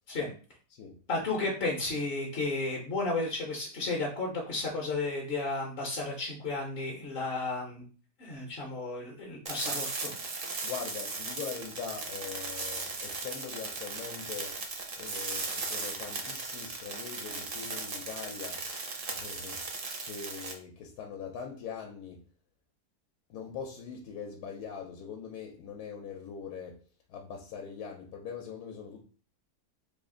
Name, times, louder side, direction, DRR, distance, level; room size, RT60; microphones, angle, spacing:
voice 1, 1.1-7.9 8.2-10.1, left 3 dB, 50° left, 0.7 m, -33 dB
sound 1, 9.5-20.5, right 4 dB, 55° right, 0.6 m, -37 dB
voice 2, 10.6-14.6 15.0-18.7 19.1-19.6 20.0-22.2 23.3-26.8 27.1-29.0, left 7 dB, 75° left, 1.1 m, -42 dB
3.3 x 2.4 x 3.6 m
omnidirectional pair, 1.7 m